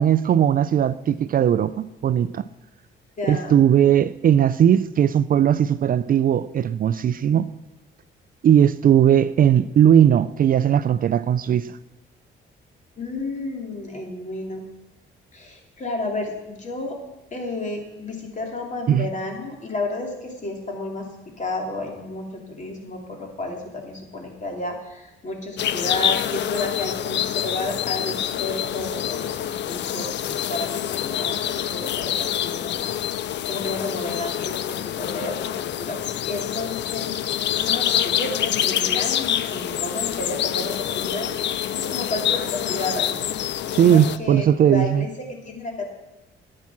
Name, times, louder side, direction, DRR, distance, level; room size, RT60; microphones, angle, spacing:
voice 1, 0.0-2.4 3.3-7.5 8.4-11.7 18.9-19.1 43.7-45.0, right 9 dB, 45° right, 0.4 m, -18 dB
voice 2, 3.2-3.6 13.0-14.6 15.3-17.0 17.3-21.1 21.4-36.0 36.2-37.2 37.5-43.4 43.7-45.9, left 2 dB, 40° left, 2.8 m, -32 dB
sound 1, 25.6-44.2, left 11 dB, 65° left, 0.5 m, -26 dB
10.5 x 8.6 x 6.0 m
cardioid pair, 90°, 20 cm